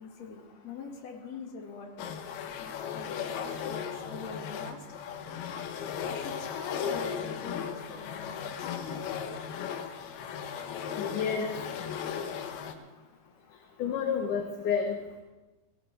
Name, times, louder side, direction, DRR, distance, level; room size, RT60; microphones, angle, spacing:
voice 1, 0.0-1.9 2.6-5.0 6.1-9.1, left 5 dB, 50° left, 1 dB, 2.6 m, -44 dB
sound 1, 2.0-12.7, left 7 dB, 85° left, 2.9 m, -36 dB
voice 2, 11.0-11.5 11.8-11.9 13.8-15.0, left 7 dB, 70° left, 2 dB, 2.3 m, -30 dB
17.5 x 17.0 x 3.3 m, 1.1 s
omnidirectional pair, 4.4 m